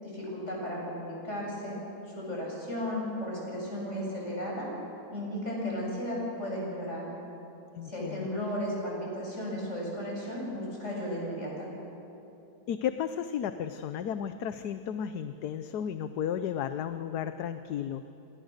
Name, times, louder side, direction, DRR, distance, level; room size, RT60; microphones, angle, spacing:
voice 1, 0.0-1.8 2.1-4.7 5.1-7.0 7.8-11.7, equal, 40° left, -3 dB, 8.5 m, -34 dB
voice 2, 7.8-8.3 12.7-18.1, left 9 dB, 70° left, 9 dB, 1.3 m, -33 dB
27.5 x 27.0 x 6.6 m, 2.9 s
omnidirectional pair, 1.8 m